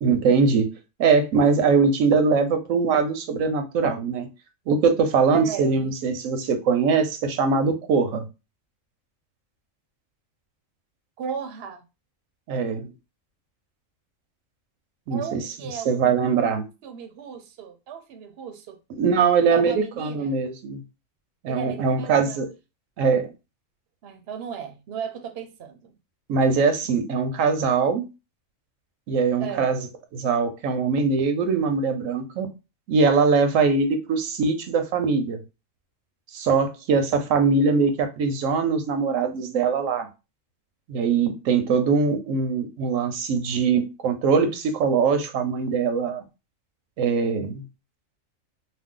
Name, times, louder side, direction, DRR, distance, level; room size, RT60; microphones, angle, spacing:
voice 1, 0.0-0.7 1.0-4.3 4.7-8.2 12.5-12.9 15.1-15.4 15.9-16.7 19.0-20.8 21.4-22.5 23.0-23.3 26.3-28.1 29.1-29.9 30.1-32.5 32.9-35.4 36.3-40.1 40.9-46.2 47.0-47.6, right 5 dB, 85° right, 1.0 m, -22 dB
voice 2, 5.3-5.9 11.2-11.8 15.1-16.0 16.8-18.8 19.5-20.3 21.5-22.4 24.0-26.0 29.4-29.7, right 7 dB, 60° right, 0.7 m, -35 dB
2.5 x 2.2 x 3.6 m
omnidirectional pair, 1.4 m